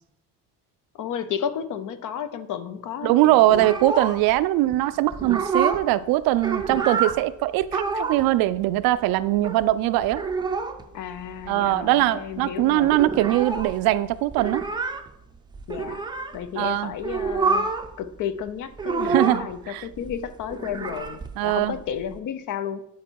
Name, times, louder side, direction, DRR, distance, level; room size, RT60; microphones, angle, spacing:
voice 1, 0.9-3.4 4.6-4.7 10.9-13.1 15.7-16.0 16.3-17.7 18.0-22.9, left 8 dB, 60° left, 0.7 m, -32 dB
voice 2, 3.0-10.2 11.5-14.6 16.6-16.9 19.0-19.8 21.4-21.7, right 15 dB, 85° right, 0.5 m, -21 dB
sound 1, 3.5-4.4 4.7-4.8 5.1-5.9 6.2-7.2 7.6-8.3 8.5-8.6 8.8-9.7 10.0-10.8 11.1-11.2 11.4-12.0 12.3-12.4 12.6-16.4 16.9-17.9 18.2-19.6 19.9-22.2, right 5 dB, 15° right, 0.5 m, -28 dB
9.3 x 4.5 x 4.6 m
cardioid pair, 130°, 35 cm